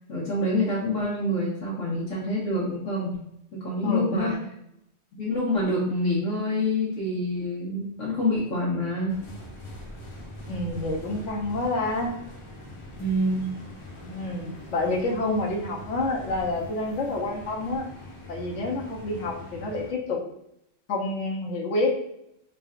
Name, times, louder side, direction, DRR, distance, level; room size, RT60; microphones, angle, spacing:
voice 1, 0.1-3.2 3.5-4.4 5.2-9.1 13.0-13.5, left 1 dB, 85° left, -7 dB, 1.5 m, -26 dB
voice 2, 3.8-4.4 10.5-12.1 14.0-17.9 18.3-20.2 20.9-21.9, left 2 dB, 70° left, 0 dB, 1.1 m, -28 dB
sound 1, 9.1-19.9, left 1 dB, 30° left, 0.6 m, -42 dB
4.3 x 3.8 x 2.4 m, 0.79 s
omnidirectional pair, 1.3 m